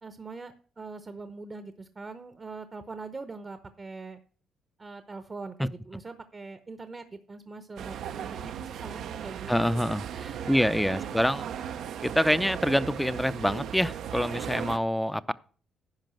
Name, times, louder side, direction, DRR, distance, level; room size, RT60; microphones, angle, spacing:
voice 1, 0.0-4.2 4.8-11.2, right 3 dB, 30° right, 0.8 m, -43 dB
sound 1, 7.8-14.8, right 9 dB, 75° right, 0.6 m, -37 dB
voice 2, 9.5-10.0 10.5-11.5 12.0-15.3, equal, ahead, 0.5 m, -26 dB
10.5 x 5.2 x 7.6 m
cardioid pair, 90°, 0 cm